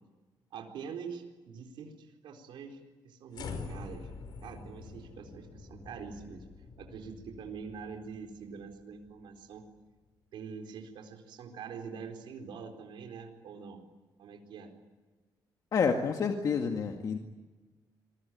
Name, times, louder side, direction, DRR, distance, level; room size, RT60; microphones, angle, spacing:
voice 1, 0.5-4.1 4.4-6.4 6.8-9.6 10.3-13.8 14.2-14.7, right 6 dB, 85° right, 3 dB, 4.3 m, -44 dB
sound 1, 3.3-9.6, left 4 dB, 65° left, 5.2 m, -46 dB
voice 2, 15.7-17.2, left 5 dB, 50° left, 4 dB, 2.0 m, -29 dB
27.5 x 22.5 x 9.4 m, 1.3 s
cardioid pair, 145°, 8 cm